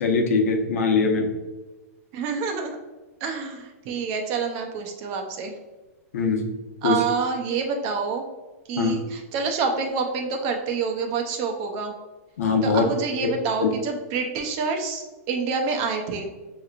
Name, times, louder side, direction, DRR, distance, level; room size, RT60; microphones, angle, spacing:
voice 1, 0.0-1.3 6.1-6.4 6.8-7.0 8.8-9.0 12.4-12.8 13.6-13.7, left 4 dB, 70° left, 3 dB, 0.9 m, -21 dB
voice 2, 2.1-2.8 3.2-5.5 6.8-8.2 8.7-11.9 12.6-16.3, right 5 dB, 35° right, 3 dB, 0.6 m, -27 dB
6.3 x 3.0 x 2.4 m, 1.2 s
hypercardioid pair, 160°, 8 cm